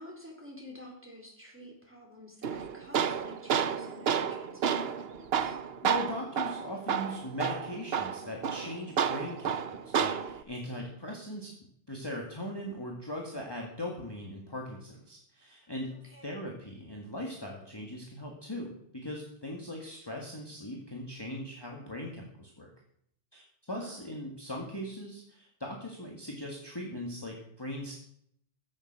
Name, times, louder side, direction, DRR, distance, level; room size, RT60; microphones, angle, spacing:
voice 1, 0.0-5.6 15.9-16.3 23.7-24.0, left 1 dB, 10° right, -1 dB, 3.8 m, -50 dB
Tools, 2.4-10.4, right 7 dB, 60° right, 1.0 m, -31 dB
voice 2, 5.8-11.5 11.9-22.7 23.3-28.0, left 1 dB, 20° left, -1 dB, 1.9 m, -39 dB
15.0 x 7.4 x 6.7 m, 0.71 s
omnidirectional pair, 1.3 m